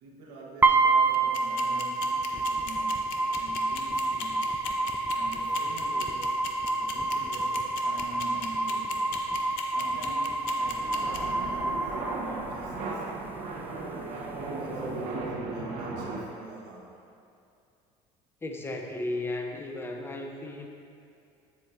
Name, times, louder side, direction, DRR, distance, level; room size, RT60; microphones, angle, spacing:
voice 1, 0.0-3.0 3.4-4.6 5.1-6.4 6.8-9.1 9.7-13.5 13.9-17.0, right 3 dB, 90° right, -3 dB, 1.5 m, -45 dB
sound 1, 0.6-12.6, right 3 dB, 15° right, 0.4 m, -28 dB
sound 2, 1.1-11.2, left 10 dB, 75° left, 0.7 m, -37 dB
sound 3, 10.6-16.2, right 3 dB, 75° right, 1.3 m, -36 dB
voice 2, 18.4-20.7, left 2 dB, 15° left, 3 dB, 0.7 m, -34 dB
7.6 x 7.4 x 2.9 m, 2.6 s
cardioid pair, 115°, 15 cm